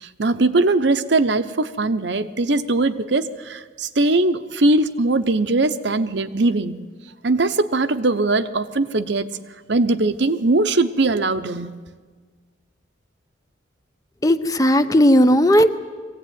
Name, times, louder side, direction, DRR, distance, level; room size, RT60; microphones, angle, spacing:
voice 1, 0.0-6.8 7.2-9.3 9.7-11.7, right 2 dB, 60° right, 10 dB, 0.9 m, -20 dB
voice 2, 14.2-15.7, equal, 20° left, 10 dB, 0.7 m, -15 dB
22.0 x 16.5 x 9.4 m, 1.5 s
head